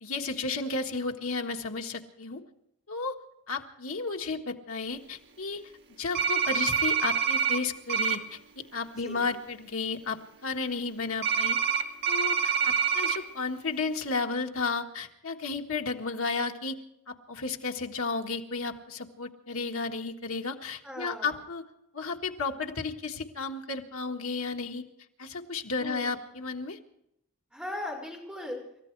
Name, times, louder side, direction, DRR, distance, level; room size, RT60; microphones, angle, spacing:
voice 1, 0.0-2.4 2.9-3.2 3.5-5.7 6.0-11.6 12.1-16.8 17.1-21.6 21.9-24.8 25.2-26.8, left 4 dB, 70° left, 2 dB, 1.6 m, -33 dB
sound 1, 6.1-7.6 7.9-8.2 11.2-13.2, right 7 dB, 50° right, 2.0 m, -26 dB
voice 2, 20.8-21.4 25.8-26.1 27.5-28.6, left 1 dB, 5° right, -2 dB, 5.9 m, -38 dB
29.0 x 14.0 x 3.3 m, 0.80 s
head